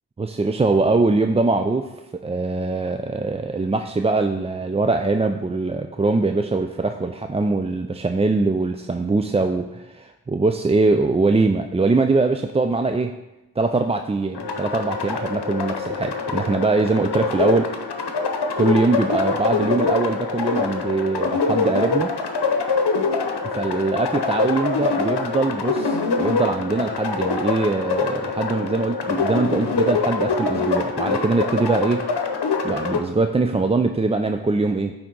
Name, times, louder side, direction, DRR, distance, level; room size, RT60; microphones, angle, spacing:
voice 1, 0.2-13.1 13.6-17.7 18.6-22.1 23.4-32.0 32.6-34.9, right 3 dB, 15° right, 6 dB, 0.3 m, -22 dB
sound 1, 14.3-33.0, left 4 dB, 80° left, 0.8 m, -24 dB
9.3 x 3.7 x 3.9 m, 0.99 s
cardioid pair, 40°, 40 cm